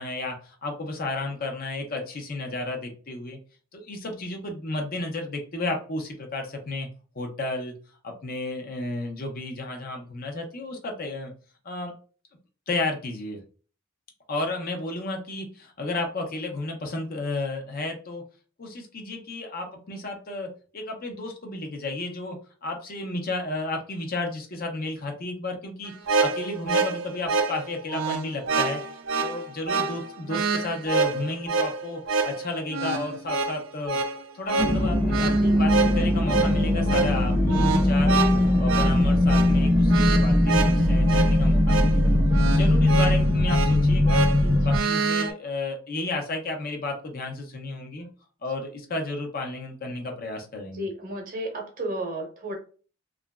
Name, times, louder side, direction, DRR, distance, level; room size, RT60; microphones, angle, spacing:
voice 1, 0.0-3.4 3.7-6.9 7.2-7.7 8.0-11.3 11.6-11.9 12.7-13.4 14.3-18.2 18.6-28.8 29.2-34.0 34.3-38.2 38.6-42.1 42.5-44.2 44.6-48.1 48.4-50.9, left 2 dB, 45° left, 3 dB, 0.6 m, -32 dB
sound 1, 25.9-45.3, right 4 dB, 70° right, 0.4 m, -27 dB
sound 2, 34.6-44.8, left 1 dB, 10° right, 0.7 m, -20 dB
voice 2, 50.7-52.5, right 1 dB, 45° right, 1 dB, 0.8 m, -33 dB
2.9 x 2.4 x 2.2 m, 0.39 s
head